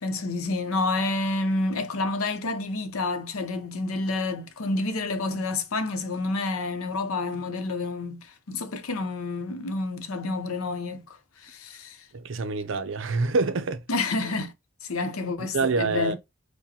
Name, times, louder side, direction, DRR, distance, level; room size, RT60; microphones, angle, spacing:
voice 1, 0.0-12.0 13.9-14.5 14.8-16.1, left 3 dB, 90° left, 0.7 m, -29 dB
voice 2, 12.1-13.8 15.5-16.1, right 3 dB, 65° right, 0.5 m, -26 dB
4.8 x 2.2 x 2.8 m
head